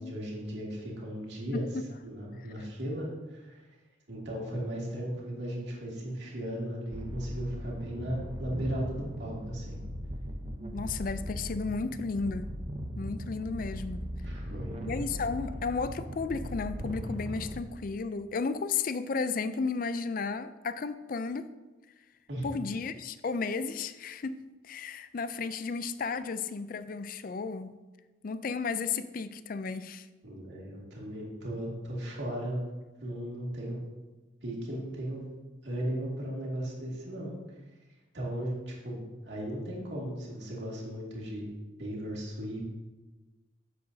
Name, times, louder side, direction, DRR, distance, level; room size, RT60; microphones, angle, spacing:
voice 1, 0.0-1.7 2.0-3.7 4.1-9.8 14.2-14.7 22.3-22.5 30.2-32.6 33.0-33.8 34.4-37.3 38.1-41.5 41.8-42.6, right 1 dB, 60° right, -4 dB, 2.3 m, -36 dB
voice 2, 1.5-1.8 10.7-12.5 13.0-14.1 14.8-21.5 22.4-24.4 24.6-27.8 28.2-30.1, left 4 dB, 45° left, 12 dB, 0.4 m, -33 dB
sound 1, 6.9-17.6, equal, 30° right, 0.7 m, -38 dB
11.0 x 7.6 x 2.7 m, 1.2 s
head